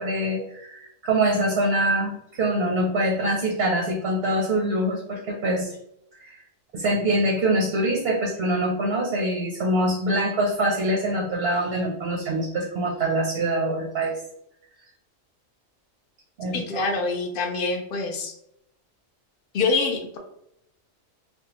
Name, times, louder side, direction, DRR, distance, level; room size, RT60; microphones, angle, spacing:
voice 1, 0.0-5.7 6.2-6.4 6.7-14.1 16.4-16.9, right 1 dB, 60° right, 1 dB, 0.7 m, -24 dB
voice 2, 16.5-18.3 19.5-20.2, left 3 dB, 55° left, 4 dB, 0.6 m, -25 dB
3.5 x 2.1 x 2.9 m, 0.77 s
omnidirectional pair, 1.4 m